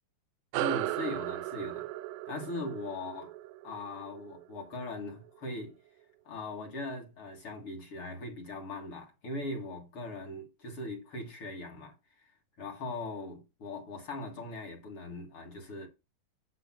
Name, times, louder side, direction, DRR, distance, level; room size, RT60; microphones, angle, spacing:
sound 1, 0.5-5.4, right 16 dB, 90° right, 2.5 m, -37 dB
voice 1, 0.6-1.9 2.3-3.3 3.6-5.8 6.3-12.3 12.6-15.9, left 2 dB, 45° left, 2.1 m, -40 dB
10.5 x 3.9 x 5.9 m
omnidirectional pair, 4.2 m